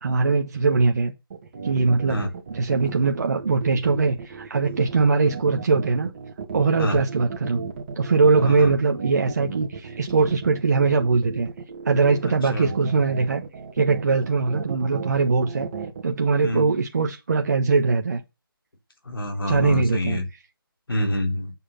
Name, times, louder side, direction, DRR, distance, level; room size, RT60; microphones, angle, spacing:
voice 1, 0.0-1.1 1.6-2.2 2.5-6.1 6.5-7.6 8.0-11.5 11.8-13.4 13.7-15.7 16.0-18.2 19.5-20.2, right 4 dB, 45° right, 1.2 m, -21 dB
sound 1, 1.3-16.0, right 5 dB, 30° right, 2.3 m, -35 dB
voice 2, 8.4-8.7 12.2-12.7 16.4-16.6 19.1-20.3 20.9-21.5, left 1 dB, 75° left, 3.3 m, -26 dB
7.5 x 6.4 x 5.7 m
figure-of-eight pair, 165°, 12 cm